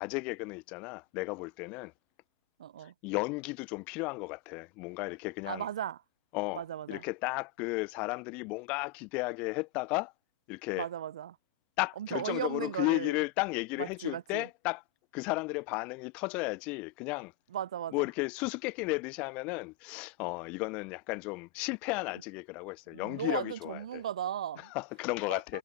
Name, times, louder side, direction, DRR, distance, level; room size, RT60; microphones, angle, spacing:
voice 1, 0.0-1.9 3.0-5.6 6.3-6.6 6.9-10.1 10.5-10.9 11.8-14.8 15.1-17.3 17.9-24.0 24.7-25.6, left 25 dB, 30° left, 0.3 m, -34 dB
voice 2, 2.6-2.9 5.4-6.0 6.5-7.0 10.7-11.4 12.0-13.2 13.8-14.5 17.5-18.0 22.9-24.7 25.3-25.6, right 10 dB, 60° right, 0.4 m, -37 dB
figure-of-eight pair, 120°, 4 cm